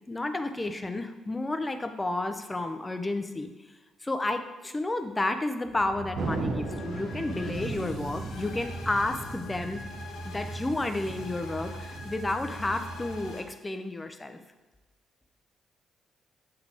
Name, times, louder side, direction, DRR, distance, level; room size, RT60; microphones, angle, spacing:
voice 1, 0.1-3.5 4.0-9.8 10.2-14.4, left 2 dB, 20° left, 8 dB, 0.6 m, -31 dB
sound 1, 5.6-13.3, right 2 dB, 45° right, 0.7 m, -43 dB
sound 2, 5.9-13.4, left 2 dB, 85° left, 1.6 m, -44 dB
Thunder, 6.1-13.0, right 3 dB, 70° right, 0.9 m, -37 dB
7.7 x 3.9 x 3.6 m, 1.2 s
cardioid pair, 90°, 0 cm